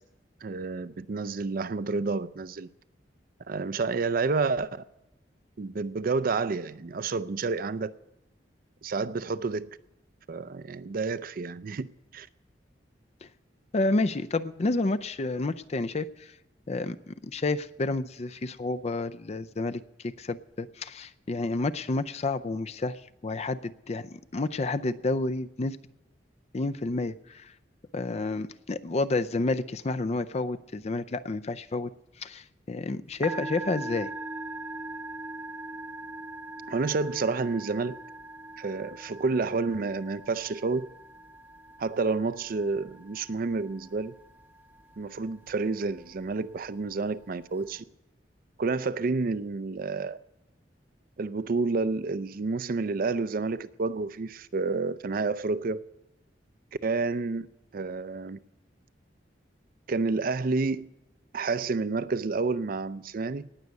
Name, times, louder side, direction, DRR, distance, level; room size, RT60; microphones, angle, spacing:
voice 1, 0.4-2.7 3.5-4.8 5.6-7.9 8.8-9.8 10.3-11.9 12.1-12.3 36.7-37.9 38.6-40.9 41.8-44.1 45.0-47.8 48.6-50.2 51.2-55.8 56.8-57.5 57.7-58.4 59.9-60.9 61.3-63.5, right 4 dB, 55° right, 0.5 m, -29 dB
voice 2, 13.7-16.3 16.7-25.8 26.5-27.5 27.9-31.9 32.2-34.1, left 2 dB, 35° left, 0.5 m, -30 dB
Musical instrument, 33.1-47.8, right 2 dB, 10° right, 1.2 m, -42 dB
19.0 x 6.5 x 8.3 m
head